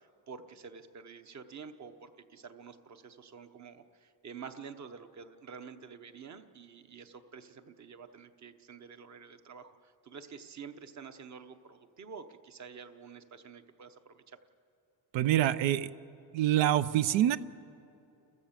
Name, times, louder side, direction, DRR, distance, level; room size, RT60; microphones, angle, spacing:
voice 1, 0.0-14.4, right 6 dB, 40° right, 9 dB, 1.1 m, -49 dB
voice 2, 15.1-15.9 16.3-17.4, right 12 dB, 80° right, 15 dB, 0.8 m, -26 dB
30.0 x 14.5 x 7.4 m, 2.9 s
cardioid pair, 130°, 45 cm